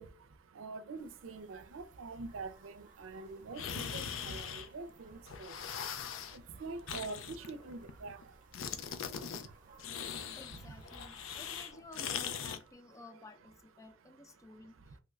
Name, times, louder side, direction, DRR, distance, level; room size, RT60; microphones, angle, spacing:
voice 1, 0.0-11.4 12.5-12.6 13.8-15.0, right 3 dB, 85° right, 0.5 m, -47 dB
sound 1, 1.0-11.7, right 2 dB, 40° right, 0.6 m, -61 dB
sound 2, 3.5-5.0 5.3-6.4 6.9-8.2 8.5-9.5 9.8-12.6, left 7 dB, 80° left, 0.4 m, -41 dB
voice 2, 10.4-15.0, left 2 dB, 15° left, 0.3 m, -54 dB
3.1 x 2.4 x 3.1 m
head